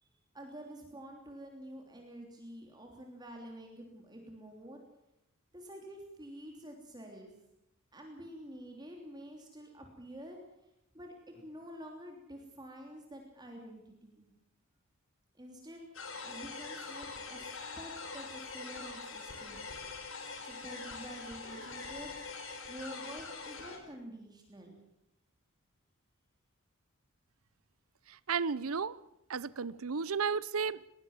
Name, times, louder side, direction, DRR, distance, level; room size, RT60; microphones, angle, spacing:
voice 1, 0.0-4.8 5.5-7.3 7.9-10.4 10.9-14.3 15.3-15.8 16.2-17.5 17.8-19.8 20.4-24.8, right 1 dB, 20° right, 3.2 m, -48 dB
sound 1, 15.9-23.8, left 4 dB, 65° left, 4.8 m, -43 dB
voice 2, 28.1-29.0 29.3-30.8, right 5 dB, 80° right, 0.7 m, -33 dB
21.0 x 19.0 x 7.3 m
head